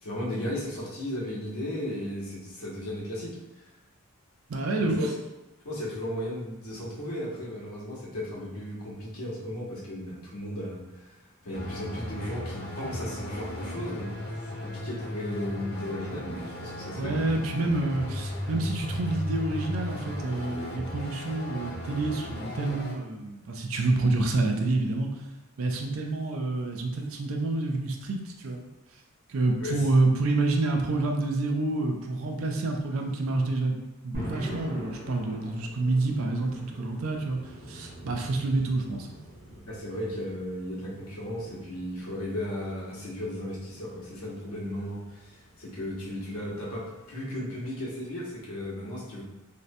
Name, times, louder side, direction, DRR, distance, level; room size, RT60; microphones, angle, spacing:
voice 1, 0.0-3.7 4.8-5.1 5.6-11.2 11.4-14.1 14.4-17.2 29.6-29.8 39.6-49.2, left 1 dB, 80° left, -5 dB, 0.8 m, -35 dB
voice 2, 4.5-5.0 17.0-25.1 25.6-28.7 29.3-33.8 34.0-37.4 37.7-39.1, right 2 dB, 65° right, 3 dB, 0.4 m, -28 dB
sound 1, 11.5-22.9, left 1 dB, 45° left, 0.5 m, -36 dB
sound 2, 34.1-47.1, equal, 45° right, 0.7 m, -44 dB
2.6 x 2.1 x 2.6 m, 1.0 s
head